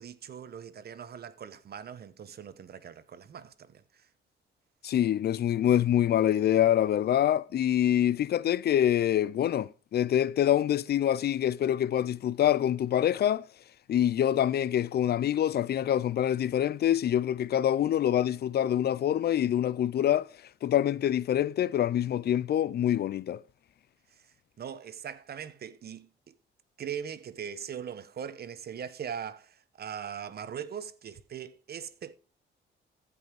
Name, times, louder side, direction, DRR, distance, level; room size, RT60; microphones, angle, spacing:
voice 1, 0.0-4.1 24.1-24.3 24.6-26.3 26.8-32.1, right 8 dB, 55° right, 1.1 m, -41 dB
voice 2, 4.8-13.5 13.9-20.3 20.6-23.4, left 11 dB, 55° left, 0.5 m, -25 dB
14.5 x 5.5 x 4.8 m
cardioid pair, 90°, 20 cm